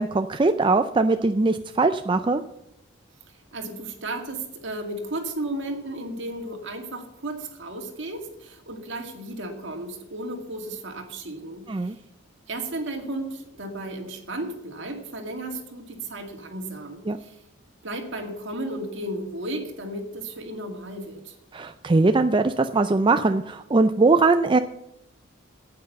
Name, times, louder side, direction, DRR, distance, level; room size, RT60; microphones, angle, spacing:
voice 1, 0.0-2.4 11.7-12.0 17.1-17.2 21.5-24.6, right 3 dB, 25° right, 8 dB, 0.4 m, -21 dB
voice 2, 3.3-12.0 12.5-17.4 17.8-21.4, right 1 dB, 65° right, 3 dB, 2.2 m, -34 dB
9.2 x 8.8 x 6.7 m, 0.84 s
head